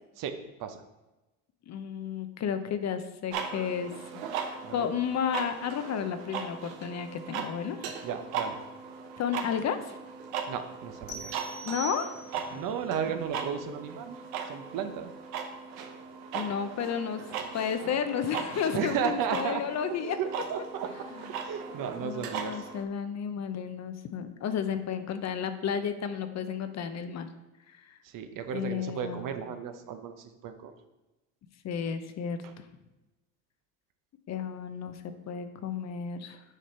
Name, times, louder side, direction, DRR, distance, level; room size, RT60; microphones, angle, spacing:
voice 1, 0.2-0.8 4.6-4.9 8.0-8.6 10.5-11.5 12.5-14.2 14.5-15.1 18.7-19.6 20.0-21.1 21.4-22.7 28.1-30.7 32.4-32.5, right 7 dB, 55° right, 8 dB, 0.9 m, -34 dB
voice 2, 1.7-7.9 9.2-10.0 11.6-12.2 12.5-12.6 16.3-20.2 21.1-21.3 22.0-27.3 27.7-27.9 28.5-29.5 31.6-32.4 34.3-36.4, left 7 dB, 40° left, 9 dB, 0.7 m, -32 dB
sound 1, 3.3-22.8, right 6 dB, 85° right, 0.9 m, -38 dB
sound 2, 11.1-12.6, right 4 dB, 65° left, 1.7 m, -42 dB
6.6 x 5.0 x 4.4 m, 1.0 s
supercardioid pair, 90°, 40 cm